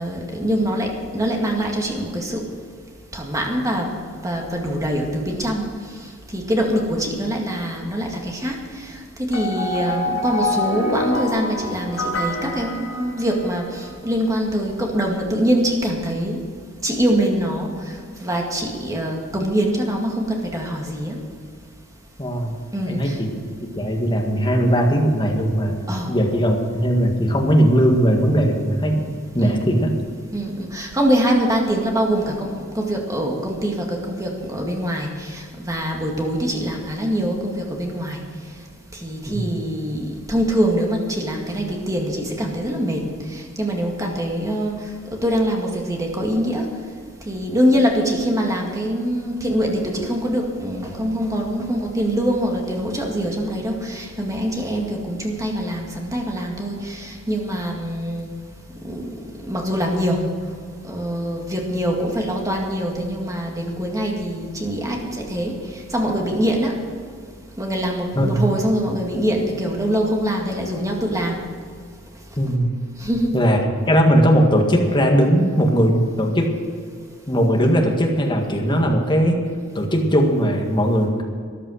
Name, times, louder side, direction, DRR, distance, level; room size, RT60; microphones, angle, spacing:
voice 1, 0.0-2.4 3.1-4.0 4.2-5.7 6.3-16.4 16.8-17.7 18.2-21.2 22.7-23.2 25.9-26.1 29.4-29.6 30.3-38.2 38.9-43.0 43.3-44.8 45.1-46.7 47.3-58.3 58.8-59.1 59.5-60.2 60.8-66.7 67.6-71.4 73.0-73.5, equal, 15° right, 0 dB, 2.1 m, -24 dB
sound 1, 9.3-13.6, left 2 dB, 70° left, 1.9 m, -26 dB
voice 2, 22.2-22.5 22.9-23.3 23.7-25.8 26.1-29.0 29.3-29.9 39.3-39.4 68.1-68.4 72.4-72.7 73.3-73.6 73.9-76.5 77.3-79.4 79.8-81.2, equal, 25° left, 1 dB, 1.9 m, -18 dB
13.5 x 11.0 x 6.5 m, 2.1 s
head